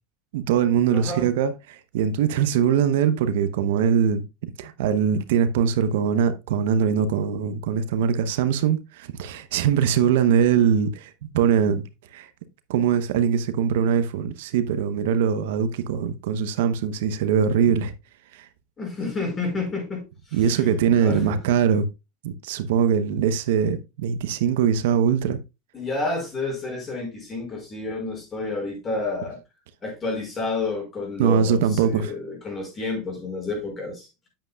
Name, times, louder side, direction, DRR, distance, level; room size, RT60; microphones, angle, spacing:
voice 1, 0.3-11.8 12.1-12.3 12.7-17.9 18.3-18.5 20.3-21.9 22.2-25.4 31.2-32.1, right 8 dB, 75° right, 0.8 m, -22 dB
voice 2, 0.9-1.3 18.8-20.7 21.0-21.4 25.7-29.4 29.8-34.1, left 3 dB, 25° left, 5.0 m, -30 dB
8.9 x 7.7 x 2.3 m
supercardioid pair, 115°, 0 cm